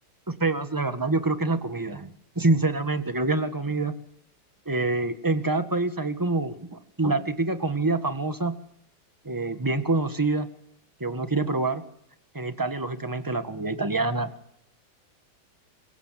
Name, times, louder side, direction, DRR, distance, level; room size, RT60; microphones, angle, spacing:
voice 1, 0.3-3.9 4.6-8.5 9.2-10.5 11.0-11.8 12.3-14.3, right 2 dB, 10° right, 9 dB, 1.5 m, -26 dB
25.0 x 23.0 x 7.7 m, 0.75 s
omnidirectional pair, 1.8 m